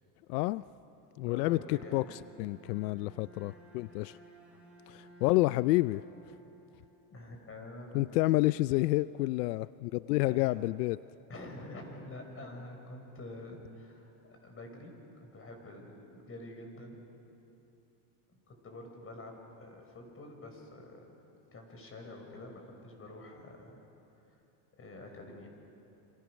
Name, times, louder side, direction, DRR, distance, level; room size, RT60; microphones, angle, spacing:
voice 1, 0.3-0.6 1.2-4.2 4.9-6.0 7.9-11.0, left 19 dB, 90° left, 17 dB, 0.5 m, -29 dB
voice 2, 1.1-2.1 7.1-8.5 10.2-10.7 11.3-14.9 15.2-17.0 18.5-21.1 21.5-23.8 24.8-25.5, left 2 dB, 30° left, 3 dB, 5.5 m, -47 dB
Bowed string instrument, 1.2-7.2, right 1 dB, 5° right, 7.4 m, -56 dB
27.5 x 27.0 x 6.3 m, 3.0 s
supercardioid pair, 115°, 46 cm